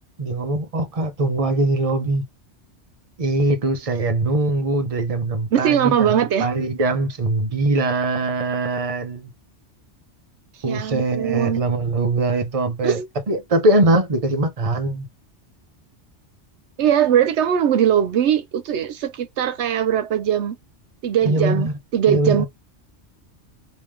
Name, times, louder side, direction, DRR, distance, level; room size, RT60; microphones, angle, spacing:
voice 1, 0.2-2.2 3.2-9.3 10.6-13.0 13.3-15.1 21.2-21.7 22.1-22.5, right 2 dB, 35° right, 0.9 m, -22 dB
voice 2, 5.5-6.5 10.7-11.6 12.8-13.1 16.8-20.6 21.0-22.5, right 9 dB, 75° right, 0.9 m, -20 dB
3.5 x 2.9 x 3.1 m
omnidirectional pair, 1.2 m